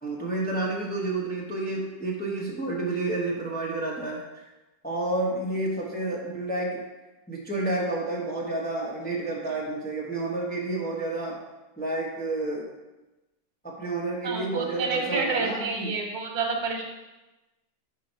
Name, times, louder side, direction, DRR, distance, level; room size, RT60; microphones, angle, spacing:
voice 1, 0.0-4.2 4.8-6.8 7.3-11.4 11.8-12.7 13.6-15.9, right 2 dB, 10° left, -3 dB, 0.7 m, -30 dB
voice 2, 14.2-16.8, right 4 dB, 85° right, 2 dB, 1.4 m, -29 dB
5.5 x 3.9 x 4.4 m, 1.1 s
omnidirectional pair, 1.6 m